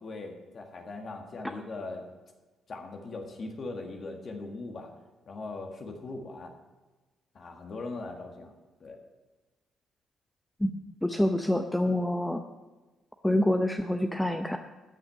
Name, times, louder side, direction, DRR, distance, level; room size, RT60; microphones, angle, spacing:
voice 1, 0.0-2.1 2.7-4.9 5.3-6.5 7.3-8.5 8.8-9.0, left 3 dB, 50° left, 2 dB, 1.6 m, -40 dB
voice 2, 11.0-12.4 13.2-14.6, left 1 dB, 5° left, 5 dB, 0.7 m, -26 dB
13.0 x 6.1 x 7.9 m, 1.2 s
cardioid pair, 90°, 0 cm